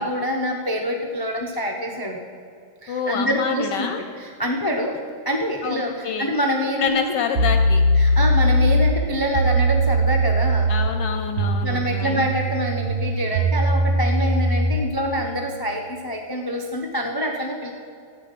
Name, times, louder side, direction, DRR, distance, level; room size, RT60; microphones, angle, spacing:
voice 1, 0.0-2.2 2.8-5.0 5.3-7.1 8.0-10.7 11.6-17.7, equal, 35° left, 2 dB, 0.3 m, -26 dB
voice 2, 2.9-4.0 5.6-6.3 6.8-7.8 10.7-12.3, left 7 dB, 70° left, 6 dB, 1.2 m, -27 dB
sound 1, 6.9-7.0 7.3-14.9, right 1 dB, 60° right, 0.6 m, -20 dB
12.5 x 9.2 x 5.9 m, 2.4 s
omnidirectional pair, 2.1 m